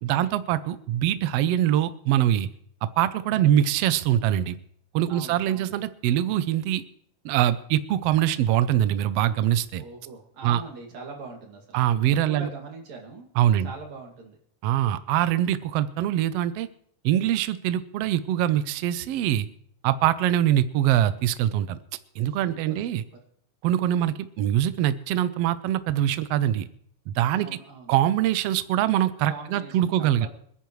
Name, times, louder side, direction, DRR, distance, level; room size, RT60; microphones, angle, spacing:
voice 1, 0.0-2.5 3.0-4.6 4.9-6.8 7.2-9.8 10.4-10.6 11.7-12.5 13.4-13.7 14.6-16.7 17.0-19.5 19.8-21.8 22.2-23.0 23.6-26.7 27.1-27.5 27.9-30.3, right 11 dB, 85° right, 13 dB, 1.4 m, -23 dB
voice 2, 5.1-5.7 9.8-13.3 13.6-14.4 22.3-23.0 27.4-27.9 29.3-30.3, right 4 dB, 60° right, 1 dB, 3.6 m, -42 dB
26.0 x 10.5 x 3.2 m, 0.64 s
omnidirectional pair, 3.6 m